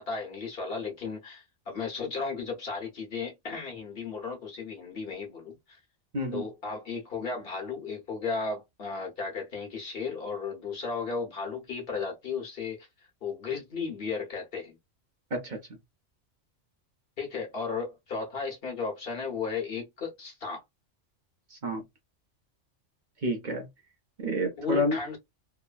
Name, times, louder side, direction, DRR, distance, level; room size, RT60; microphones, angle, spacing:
voice 1, 0.0-5.8 6.3-12.9 13.2-14.8 17.2-20.6 24.6-25.2, left 5 dB, 50° left, 1.3 m, -35 dB
voice 2, 6.1-6.5 15.3-15.6 21.5-21.8 23.2-23.7 24.2-25.0, equal, 45° right, 0.9 m, -29 dB
3.1 x 2.1 x 2.4 m
omnidirectional pair, 1.2 m